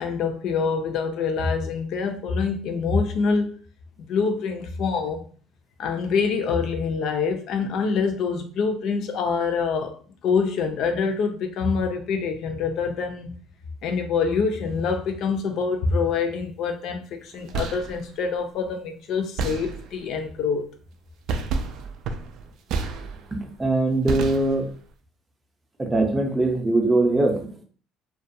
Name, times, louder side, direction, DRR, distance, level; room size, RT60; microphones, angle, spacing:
voice 1, 0.0-3.6 4.0-5.2 5.8-13.4 13.8-20.6, left 5 dB, 60° left, 0.4 m, -25 dB
sound 1, 17.3-18.0 19.4-20.1 21.3-23.4 24.1-24.8, right 4 dB, 60° right, 0.3 m, -30 dB
voice 2, 23.3-24.7 25.8-27.6, right 2 dB, 15° right, 0.5 m, -22 dB
2.3 x 2.2 x 2.6 m
cardioid pair, 135°, 0 cm